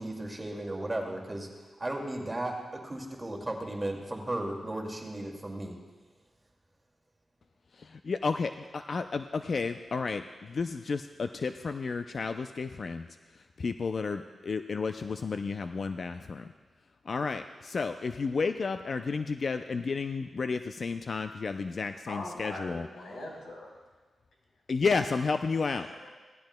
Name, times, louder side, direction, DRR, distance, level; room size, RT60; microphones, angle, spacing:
voice 1, 0.0-5.7, right 1 dB, 20° right, 0 dB, 2.2 m, -35 dB
voice 2, 7.8-13.1 13.6-16.5 17.1-22.9 24.7-25.9, left 4 dB, 55° left, 8 dB, 0.4 m, -32 dB
voice 3, 22.1-23.7 25.8-26.1, left 2 dB, 75° left, -1 dB, 3.8 m, -41 dB
17.5 x 14.0 x 2.2 m, 1.3 s
cardioid pair, 60°, 0 cm